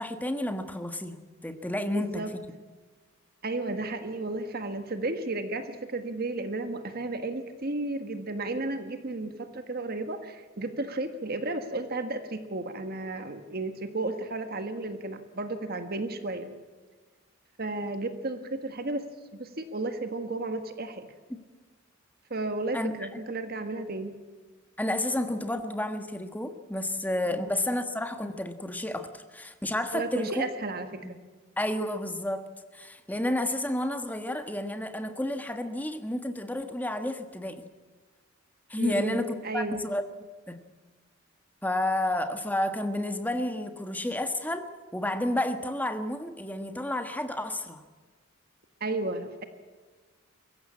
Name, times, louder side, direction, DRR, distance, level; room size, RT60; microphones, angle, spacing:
voice 1, 0.0-2.2 22.7-23.2 24.8-30.5 31.0-31.1 31.6-32.5 32.7-37.6 38.7-40.0 40.5-40.6 41.6-47.8, left 1 dB, 10° left, 7 dB, 1.4 m, -31 dB
voice 2, 1.8-2.3 3.4-16.5 17.6-19.1 19.3-21.1 22.3-24.2 27.3-27.5 29.9-31.2 38.8-39.8 48.8-49.4, right 2 dB, 50° right, 8 dB, 1.5 m, -33 dB
23.5 x 15.0 x 8.7 m, 1.4 s
head